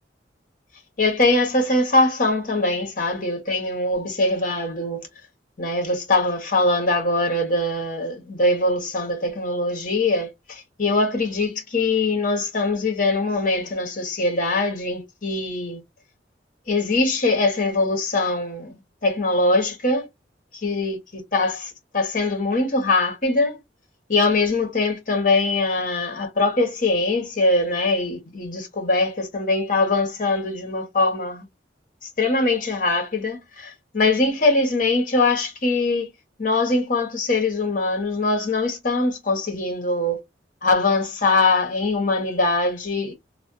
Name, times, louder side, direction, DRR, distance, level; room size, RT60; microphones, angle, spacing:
voice 1, 1.0-5.1 5.6-15.8 16.7-18.7 19.0-20.1 20.6-23.6 24.1-31.4 32.2-36.1 36.4-40.2 40.6-43.1, left 2 dB, 45° left, 1.2 m, -22 dB
3.3 x 2.2 x 2.7 m
head